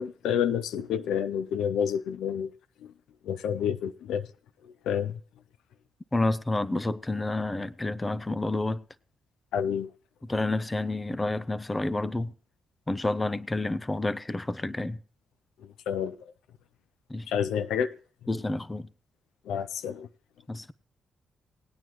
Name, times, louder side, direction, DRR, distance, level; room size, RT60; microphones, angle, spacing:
voice 1, 0.0-2.5 2.8-2.9 3.2-4.3 4.6-5.2 9.5-9.9 15.9-16.2 17.3-17.9 19.5-20.1, left 8 dB, 85° left, 0.4 m, -29 dB
voice 2, 6.1-8.8 10.3-12.3 12.9-15.0 17.1-17.3 18.3-18.9 20.5-20.7, left 2 dB, 20° left, 0.6 m, -29 dB
18.5 x 9.2 x 3.0 m
cardioid pair, 70°, 0 cm